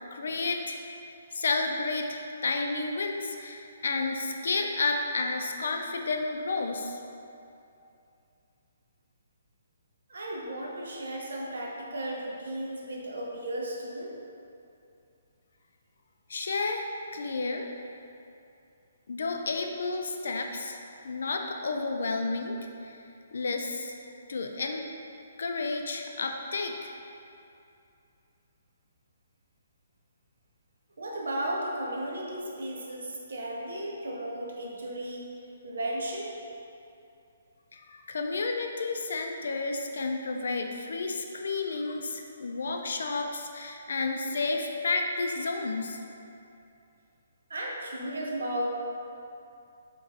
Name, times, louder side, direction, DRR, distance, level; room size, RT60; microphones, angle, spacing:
voice 1, 0.1-0.8 1.3-7.0 16.3-16.9 17.1-17.7 19.1-20.8 21.0-22.6 22.8-23.0 23.3-23.9 24.3-24.8 25.4-26.9 37.7-46.0, left 3 dB, 70° left, 3 dB, 0.4 m, -31 dB
voice 2, 10.1-14.1 31.0-35.3 35.6-36.3 47.5-48.7, right 1 dB, 85° right, -3 dB, 0.7 m, -35 dB
3.6 x 3.0 x 2.6 m, 2.6 s
hypercardioid pair, 170°, 0 cm